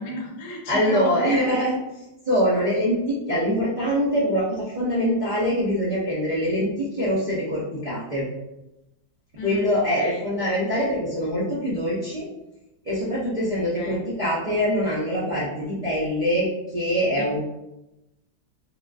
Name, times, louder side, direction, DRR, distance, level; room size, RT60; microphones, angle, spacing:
voice 1, 0.0-1.3 9.4-10.3 13.7-14.0 17.1-17.4, left 1 dB, 75° left, 1 dB, 1.2 m, -34 dB
voice 2, 0.7-8.3 9.4-12.3 12.8-17.4, equal, 75° right, -10 dB, 0.4 m, -24 dB
3.7 x 2.3 x 2.4 m, 0.94 s
omnidirectional pair, 1.9 m